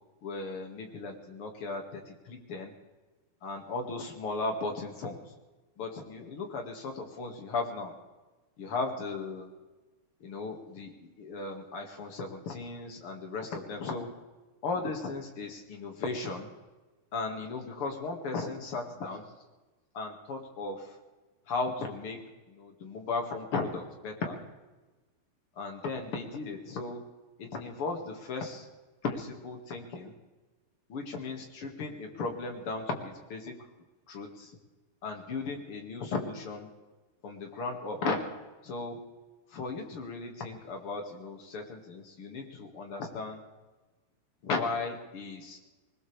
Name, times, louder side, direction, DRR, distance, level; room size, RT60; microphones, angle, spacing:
voice 1, 0.2-2.7 3.4-5.2 5.8-7.9 8.6-9.5 10.2-14.1 14.6-16.5 17.1-19.2 19.9-21.0 21.5-22.2 22.5-24.4 25.6-27.0 27.4-28.7 29.0-30.1 30.9-33.6 34.1-34.5 35.0-36.7 37.2-38.2 38.6-39.0 39.5-43.4 44.4-45.6, left 3 dB, 45° left, 3 dB, 2.3 m, -36 dB
20.5 x 20.0 x 3.4 m, 1.2 s
omnidirectional pair, 4.6 m